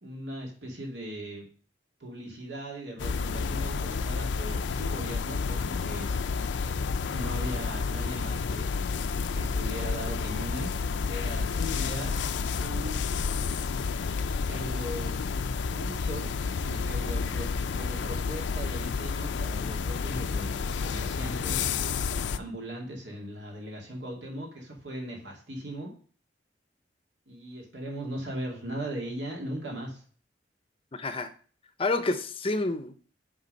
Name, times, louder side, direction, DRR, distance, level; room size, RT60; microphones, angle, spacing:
voice 1, 0.0-1.5 2.0-6.1 7.1-8.7 9.3-10.8 11.1-13.0 14.4-15.2 15.6-21.7 22.4-25.9 27.3-30.0, right 1 dB, 80° right, -1 dB, 2.5 m, -39 dB
sound 1, 3.0-22.4, left 5 dB, 85° left, 0.4 m, -30 dB
voice 2, 30.9-31.3 31.8-33.0, left 2 dB, 30° left, 10 dB, 0.6 m, -28 dB
8.2 x 3.8 x 5.2 m, 0.43 s
head